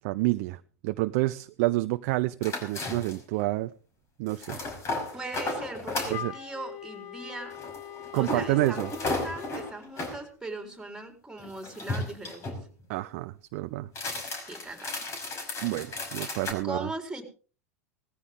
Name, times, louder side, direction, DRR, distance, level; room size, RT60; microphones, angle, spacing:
voice 1, 0.0-3.7 4.2-4.6 5.1-5.2 6.1-6.3 8.1-8.9 12.9-13.9 15.6-16.9, right 19 dB, 55° right, 12 dB, 0.6 m, -29 dB
sound 1, 2.4-3.3 4.3-6.2 7.5-10.2 11.4-12.6 13.9-16.5, left 2 dB, 35° left, 5.6 m, -34 dB
voice 2, 5.1-7.5 8.1-12.6 14.5-15.1 16.2-17.2, right 2 dB, 5° right, 5 dB, 4.1 m, -39 dB
Wind instrument woodwind instrument, 6.1-9.8, left 10 dB, 55° left, 1.4 m, -42 dB
18.5 x 15.0 x 3.7 m, 0.38 s
figure-of-eight pair, 85°, 8 cm